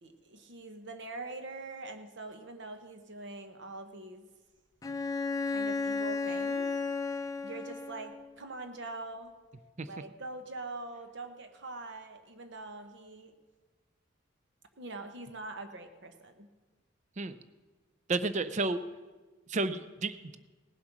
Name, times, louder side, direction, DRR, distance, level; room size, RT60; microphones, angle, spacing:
voice 1, 0.0-4.3 5.5-6.7 7.4-9.3 9.8-13.3 14.8-16.5, right 2 dB, 60° right, 8 dB, 1.1 m, -43 dB
Bowed string instrument, 4.8-8.3, left 4 dB, 15° left, 0.6 m, -33 dB
voice 2, 18.1-18.8 19.5-20.4, right 3 dB, 35° right, 13 dB, 0.5 m, -31 dB
18.0 x 7.7 x 6.0 m, 1.3 s
head